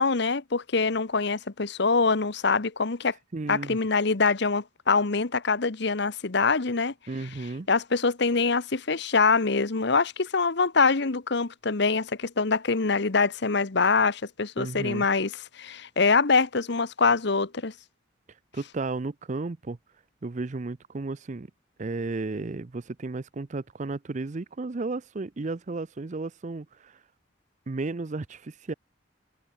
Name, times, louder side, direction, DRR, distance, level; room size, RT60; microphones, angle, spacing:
voice 1, 0.0-3.1 3.5-6.9 7.7-15.3 15.6-17.7, left 4 dB, 60° left, 1.1 m, -24 dB
voice 2, 3.3-3.8 7.1-7.7 14.6-15.1 18.5-19.8 20.2-21.5 21.8-27.0 27.7-28.7, right 3 dB, 40° right, 0.5 m, -33 dB
head